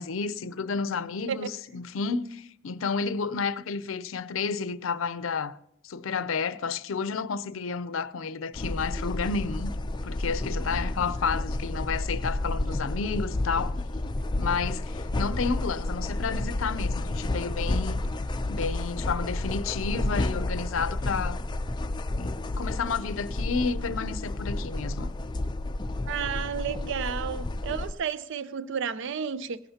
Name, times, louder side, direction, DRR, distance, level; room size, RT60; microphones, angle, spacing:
voice 1, 0.0-5.6 5.8-9.7 10.0-13.8 14.4-18.0 18.5-21.4 22.2-25.1, left 5 dB, 80° left, 0.5 m, -31 dB
sound 1, 8.5-27.9, left 2 dB, 20° left, 0.5 m, -31 dB
voice 2, 26.1-29.6, right 7 dB, 65° right, 0.4 m, -32 dB
18.0 x 11.0 x 2.8 m
head